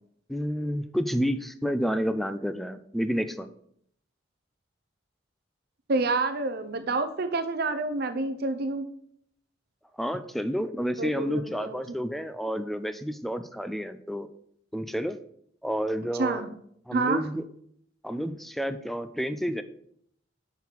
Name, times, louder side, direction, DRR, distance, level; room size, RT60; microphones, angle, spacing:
voice 1, 0.3-3.5 10.0-14.3 14.7-15.2 15.6-16.4 16.9-17.4 18.0-19.6, equal, ahead, 11 dB, 0.3 m, -30 dB
voice 2, 5.9-8.9 11.0-11.8 16.2-16.5 16.9-17.2, right 3 dB, 55° right, 10 dB, 0.6 m, -28 dB
5.9 x 5.6 x 4.5 m, 0.68 s
head